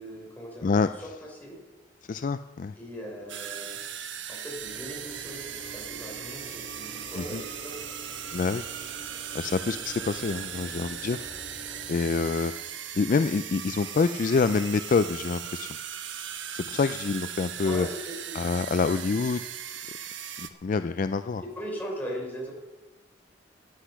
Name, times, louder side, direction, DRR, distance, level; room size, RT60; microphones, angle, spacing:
voice 1, 0.0-0.7 1.0-1.6 2.8-3.8 4.3-7.8 17.6-18.3 21.6-22.5, equal, 10° left, -2 dB, 4.0 m, -39 dB
voice 2, 0.6-1.1 2.1-2.7 7.1-7.4 8.3-8.6 9.3-11.2 11.9-12.5 13.0-15.7 16.5-17.9 18.3-19.4 20.4-21.4, left 4 dB, 45° left, 11 dB, 0.3 m, -26 dB
sound 1, 3.3-20.5, right 9 dB, 75° right, 1.1 m, -38 dB
Train / Engine / Alarm, 4.5-12.8, right 1 dB, 75° left, 5.7 m, -47 dB
16.0 x 10.0 x 5.8 m, 1.2 s
head